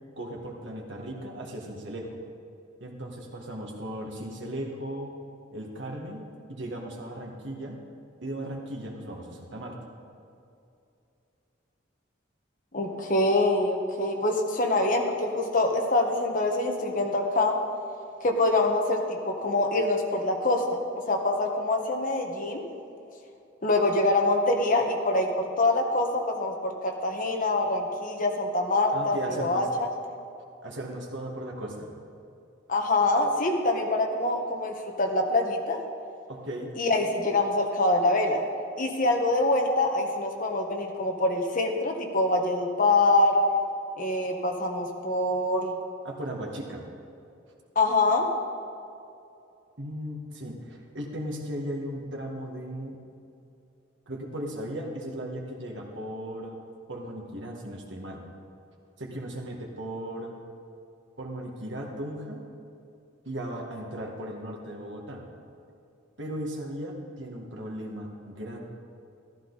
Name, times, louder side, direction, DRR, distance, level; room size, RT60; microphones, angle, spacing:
voice 1, 0.2-2.2 2.8-5.1 5.5-7.8 8.2-9.8 28.9-29.7 30.6-31.9 36.3-36.7 46.0-46.9 49.8-53.0 54.1-56.6 56.9-58.2 59.0-60.3 61.2-62.4 63.3-65.2 66.2-68.6, right 1 dB, 65° right, 0 dB, 2.0 m, -37 dB
voice 2, 12.7-17.6 18.2-20.8 21.1-22.6 23.6-29.9 32.7-35.8 36.8-38.4 38.8-43.4 44.0-45.7 47.7-48.3, left 2 dB, 45° left, 2 dB, 1.4 m, -25 dB
14.0 x 13.5 x 4.1 m, 2.7 s
head